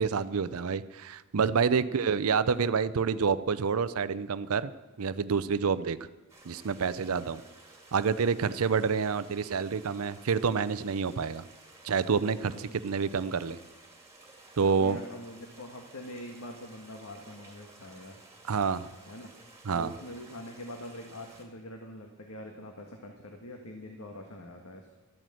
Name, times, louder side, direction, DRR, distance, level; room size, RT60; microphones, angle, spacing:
voice 1, 0.0-4.7 5.0-6.0 6.4-7.4 7.9-11.4 11.8-13.6 14.6-15.0 18.5-18.9 19.6-19.9, right 5 dB, 70° right, 15 dB, 0.5 m, -28 dB
voice 2, 1.8-2.1 12.4-12.9 14.6-18.2 19.1-19.3 19.7-24.9, left 1 dB, 70° left, 3 dB, 1.5 m, -44 dB
sound 1, 6.3-21.4, right 2 dB, 15° right, 2.3 m, -54 dB
13.0 x 9.2 x 7.7 m, 1.1 s
head